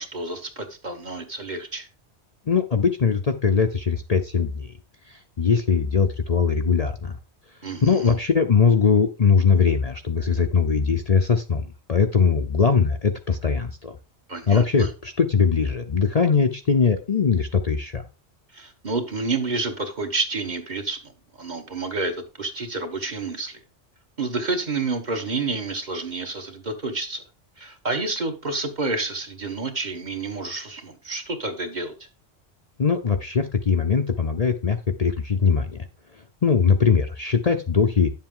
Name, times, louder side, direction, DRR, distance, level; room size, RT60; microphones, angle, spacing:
voice 1, 0.0-1.9 7.6-8.1 14.3-14.9 18.5-21.0 21.4-23.6 24.2-27.2 27.6-31.9, right 3 dB, 40° right, 4 dB, 1.4 m, -29 dB
voice 2, 2.5-4.7 5.1-7.2 7.8-11.6 11.9-13.9 14.5-18.0 32.8-35.7 36.4-38.1, left 5 dB, 40° left, 5 dB, 0.7 m, -21 dB
10.0 x 7.4 x 3.8 m, 0.32 s
omnidirectional pair, 1.1 m